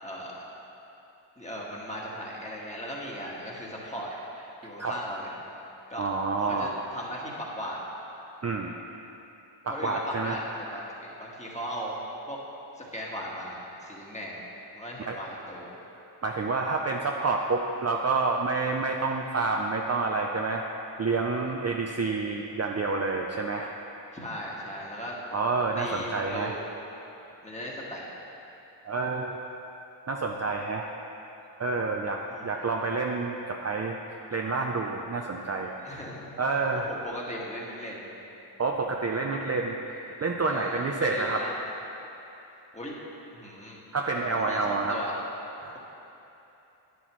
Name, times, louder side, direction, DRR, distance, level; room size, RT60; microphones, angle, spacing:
voice 1, 0.0-0.4 1.4-4.1 4.6-5.3 5.9-6.1 6.4-7.8 9.7-12.0 12.3-12.4 12.8-14.4 14.7-15.7 24.1-25.2 25.8-26.6 27.4-28.0 32.3-32.6 35.8-36.3 36.7-38.1 40.5-41.7 42.7-42.9 43.3-43.8 44.3-45.2, equal, 15° left, -4 dB, 1.5 m, -37 dB
voice 2, 6.0-6.8 8.4-8.8 9.6-10.4 15.1-15.2 16.2-20.6 21.0-23.7 25.3-26.6 28.8-29.4 30.1-30.9 31.6-34.0 34.3-36.0 36.4-36.9 38.6-41.4 43.9-45.0 45.6-45.8, right 3 dB, 35° right, 1 dB, 0.5 m, -28 dB
11.0 x 9.8 x 3.1 m, 3.0 s
wide cardioid pair, 120°, 48 cm